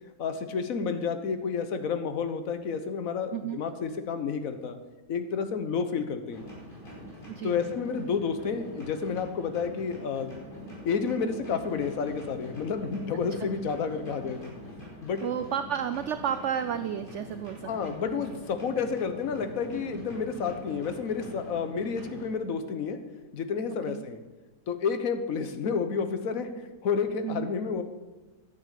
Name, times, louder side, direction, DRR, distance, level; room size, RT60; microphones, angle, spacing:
voice 1, 0.2-4.8 5.1-6.5 7.4-10.4 10.8-14.5 15.0-15.3 17.7-23.0 23.3-24.2 24.7-27.8, left 5 dB, 60° left, 9 dB, 1.5 m, -30 dB
voice 2, 3.3-3.6 7.3-7.6 13.4-13.5 15.2-18.0 23.9-24.1 27.2-27.5, right 9 dB, 60° right, 11 dB, 0.8 m, -32 dB
sound 1, 6.3-22.3, left 1 dB, 30° left, 5.3 m, -44 dB
12.0 x 10.0 x 8.4 m, 1.2 s
omnidirectional pair, 1.7 m